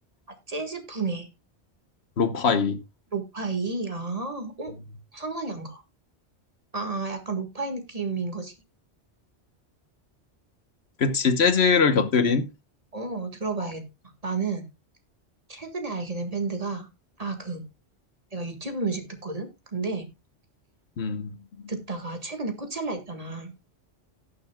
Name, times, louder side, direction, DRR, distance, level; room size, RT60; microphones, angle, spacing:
voice 1, 0.3-1.3 3.1-4.7 5.1-5.8 6.7-8.5 12.9-13.8 14.2-14.7 15.5-16.9 17.2-17.6 18.3-20.1 21.7-23.5, right 3 dB, 35° right, 1.7 m, -31 dB
voice 2, 2.2-2.8 11.0-12.5 13.6-13.7 21.0-21.3, left 5 dB, 70° left, 1.2 m, -22 dB
18.0 x 6.7 x 2.2 m
omnidirectional pair, 1.1 m